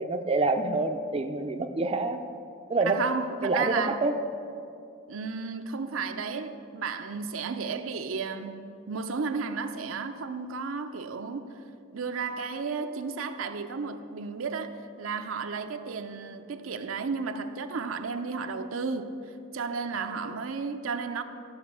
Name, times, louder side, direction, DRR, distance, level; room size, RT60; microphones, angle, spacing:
voice 1, 0.0-2.2 2.7-3.0 3.4-4.1, right 3 dB, 30° right, 6 dB, 0.4 m, -27 dB
voice 2, 2.8-4.0 5.1-11.6 11.9-14.7 15.0-21.2, right 5 dB, 80° right, 8 dB, 0.6 m, -33 dB
13.0 x 5.1 x 6.1 m, 2.5 s
head